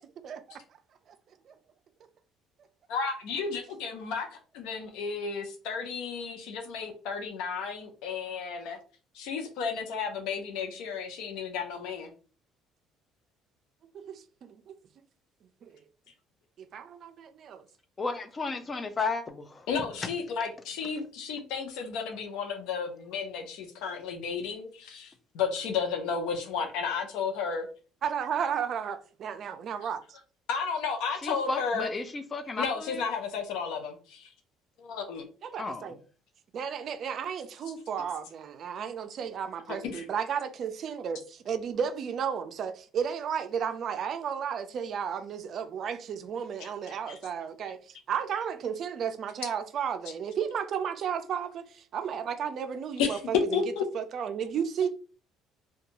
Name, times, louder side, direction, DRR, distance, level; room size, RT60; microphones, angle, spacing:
voice 1, 0.2-0.6 1.5-1.6 13.9-14.8 15.6-15.7 16.6-17.6 28.0-30.0 35.4-36.0 36.5-53.6 53.9-54.9, right 7 dB, 50° right, 0.4 m, -33 dB
voice 2, 2.9-8.8 9.1-12.1 19.7-27.7 30.5-31.9 32.6-34.3 34.8-35.3 39.9-40.0 46.6-46.7 47.1-47.2 53.0-53.8, left 5 dB, 80° left, 0.6 m, -32 dB
voice 3, 18.0-19.7 31.2-33.0 35.6-35.9, left 3 dB, 25° left, 0.4 m, -33 dB
2.6 x 2.2 x 2.8 m
cardioid pair, 120°, 0 cm